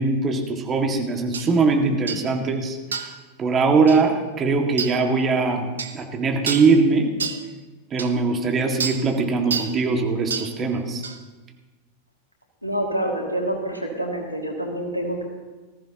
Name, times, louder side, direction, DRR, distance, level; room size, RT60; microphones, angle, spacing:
voice 1, 0.0-2.8 3.4-7.1 7.9-11.0, right 4 dB, 25° right, 3 dB, 1.9 m, -21 dB
sound 1, 1.3-1.5 2.1-2.3 2.9-3.2 3.9-4.0 4.8-5.0 5.8-6.0 6.5-6.7 7.2-7.4 8.0-8.1 8.8-9.0 9.5-9.8 10.3-10.5 11.0-11.2, right 5 dB, 70° right, 1.0 m, -28 dB
voice 2, 12.6-15.2, right 1 dB, 90° left, 0 dB, 2.3 m, -27 dB
19.5 x 15.0 x 2.9 m, 1.3 s
figure-of-eight pair, 90°, 0 cm